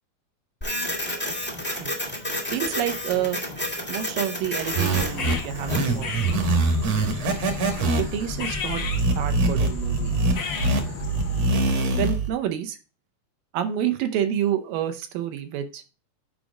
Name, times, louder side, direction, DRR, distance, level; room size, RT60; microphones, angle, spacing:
Printer, 0.6-6.0, left 1 dB, 15° left, 0.4 m, -31 dB
voice 1, 2.5-3.4 3.9-6.4 8.0-8.8 9.1-10.2 12.0-12.8 13.5-15.8, right 10 dB, 75° right, 8 dB, 2.3 m, -28 dB
sound 1, 4.6-11.8, left 4 dB, 80° left, 1.0 m, -33 dB
sound 2, 4.6-12.3, right 2 dB, 55° right, 2.0 m, -24 dB
7.0 x 5.1 x 4.9 m, 0.32 s
omnidirectional pair, 4.4 m